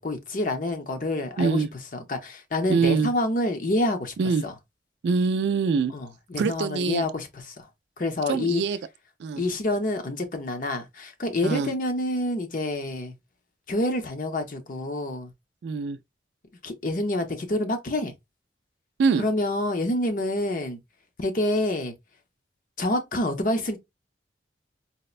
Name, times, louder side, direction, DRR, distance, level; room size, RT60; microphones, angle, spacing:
voice 1, 0.0-4.1 4.4-4.5 5.9-7.7 8.0-8.6 9.4-13.1 13.7-15.3 16.6-18.1 19.2-20.8 21.2-21.9 22.8-23.8, left 1 dB, 45° left, 0.6 m, -27 dB
voice 2, 1.4-1.7 2.7-3.1 4.2-4.4 5.0-5.9 6.4-7.0 8.3-8.8 9.2-9.4 11.4-11.7 15.6-16.0 19.0-19.2, right 5 dB, 70° right, 0.3 m, -24 dB
4.2 x 2.1 x 2.4 m
head